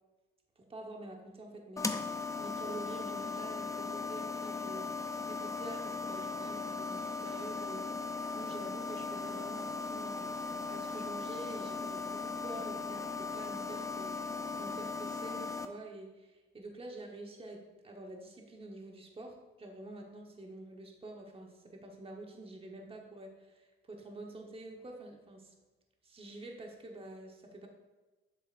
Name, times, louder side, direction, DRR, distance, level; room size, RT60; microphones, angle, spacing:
voice 1, 0.6-2.0 2.4-7.9 8.3-10.3 10.7-14.3 14.6-25.5 26.0-27.7, right 2 dB, 30° right, 1 dB, 1.3 m, -47 dB
sound 1, 1.8-15.7, left 4 dB, 15° left, 0.6 m, -38 dB
7.7 x 6.8 x 2.6 m, 1.1 s
cardioid pair, 90°, 20 cm